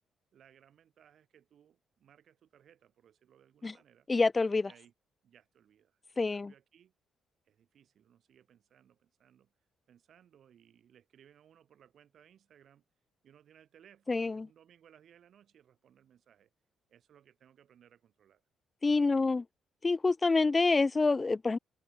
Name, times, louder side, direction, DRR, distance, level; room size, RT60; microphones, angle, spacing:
voice 1, 0.3-4.1 4.7-4.9 5.2-6.9 7.4-9.5 9.9-12.8 13.2-16.5 16.9-18.4 18.9-19.3, right 9 dB, 65° right, 6.5 m, -63 dB
voice 2, 4.1-4.7 6.2-6.5 14.1-14.5 18.8-19.4 19.8-21.6, left 3 dB, 25° left, 0.3 m, -27 dB
cardioid pair, 90°, 0 cm